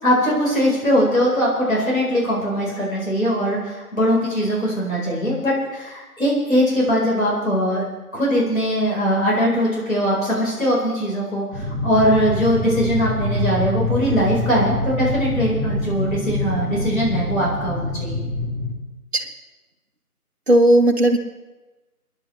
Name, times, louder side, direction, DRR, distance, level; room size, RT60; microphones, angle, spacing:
voice 1, 0.0-7.8 8.1-18.2, equal, 60° left, -5 dB, 4.5 m, -21 dB
sound 1, 11.5-18.7, left 1 dB, 10° right, 3.3 m, -25 dB
voice 2, 20.5-21.2, right 1 dB, 45° right, 0 dB, 1.3 m, -15 dB
28.5 x 10.5 x 3.3 m, 1.1 s
figure-of-eight pair, 165°, 46 cm